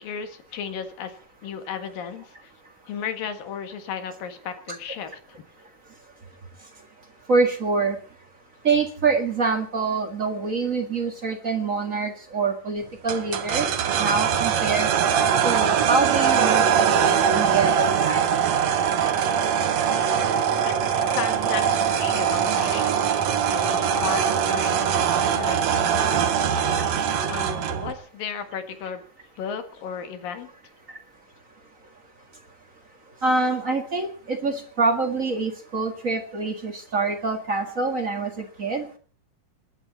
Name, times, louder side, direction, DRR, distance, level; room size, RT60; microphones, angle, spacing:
voice 1, 0.0-2.5 2.9-5.4 20.6-23.0 23.5-26.3 27.2-29.0 29.4-30.5, left 7 dB, 80° left, 8 dB, 3.4 m, -34 dB
voice 2, 7.3-8.0 8.6-13.7 14.0-14.9 15.4-18.4 33.2-38.9, right 4 dB, 35° right, 5 dB, 1.4 m, -25 dB
sound 1, 13.1-27.9, right 8 dB, 60° right, 2.3 m, -22 dB
27.5 x 11.5 x 4.1 m, 0.41 s
omnidirectional pair, 3.9 m